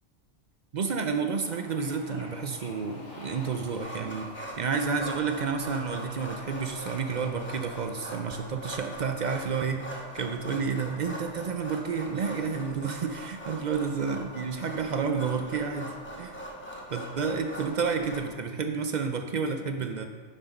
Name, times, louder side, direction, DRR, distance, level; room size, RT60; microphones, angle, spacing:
voice 1, 0.7-4.3 4.6-16.4 16.9-20.1, right 5 dB, 55° right, 6 dB, 0.5 m, -30 dB
Bird / Ocean, 1.4-7.8, left 1 dB, 65° left, 2.0 m, -48 dB
sound 1, 3.8-18.2, equal, 10° left, 1.0 m, -41 dB
7.3 x 6.1 x 5.3 m, 1.5 s
omnidirectional pair, 1.3 m